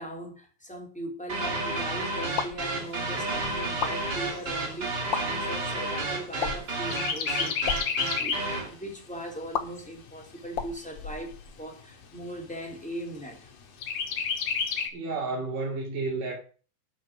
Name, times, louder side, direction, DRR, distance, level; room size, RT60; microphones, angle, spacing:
voice 1, 0.0-13.5, right 1 dB, ahead, 3.5 m, -39 dB
sound 1, 1.3-8.7, right 2 dB, 30° right, 3.2 m, -31 dB
sound 2, 2.3-2.7 3.6-4.0 5.0-5.2 6.4-6.7 7.5-7.8 9.5-9.6 10.5-11.7, left 7 dB, 65° left, 1.2 m, -32 dB
Chirp tweet, 2.8-6.5 6.9-8.6 9.0-9.1 9.5-10.5 11.0-11.1 11.5-11.6 12.0-12.6 13.8-14.9, left 6 dB, 80° left, 3.7 m, -32 dB
voice 2, 14.9-16.4, right 3 dB, 80° right, 4.4 m, -31 dB
12.0 x 7.3 x 6.4 m
omnidirectional pair, 3.7 m